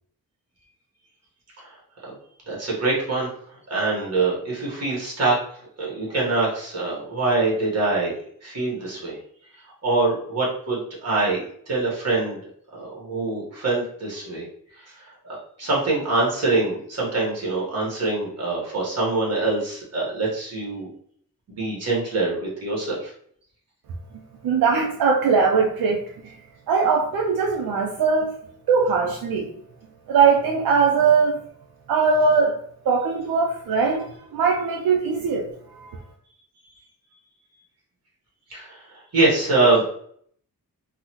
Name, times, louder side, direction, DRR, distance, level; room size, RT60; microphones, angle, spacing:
voice 1, 2.5-3.3 3.7-5.4 5.8-8.1 8.4-9.2 9.8-12.4 12.7-14.4 14.8-15.0 15.6-20.9 21.5-23.1 38.5-39.8, right 3 dB, 45° right, -4 dB, 1.4 m, -24 dB
voice 2, 24.4-26.3 26.7-28.3 28.7-29.5 30.1-31.4 31.9-32.6 32.9-34.1 34.3-35.5 35.8-35.9, right 5 dB, 80° right, 0 dB, 0.5 m, -20 dB
3.8 x 2.1 x 2.9 m, 0.63 s
wide cardioid pair, 125°, 35 cm